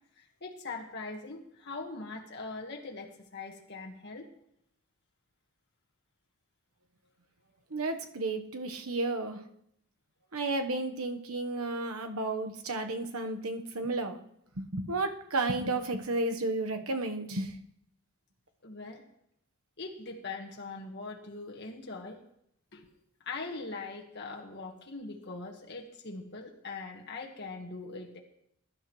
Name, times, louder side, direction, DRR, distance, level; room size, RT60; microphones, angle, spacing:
voice 1, 0.2-4.3 18.6-19.0 19.8-22.2 22.7-22.9 23.2-28.2, left 3 dB, 55° left, 0 dB, 1.6 m, -41 dB
voice 2, 7.7-9.4 10.3-14.2 14.6-17.5, right 2 dB, 90° right, 6 dB, 1.2 m, -32 dB
21.5 x 11.5 x 3.2 m, 0.74 s
head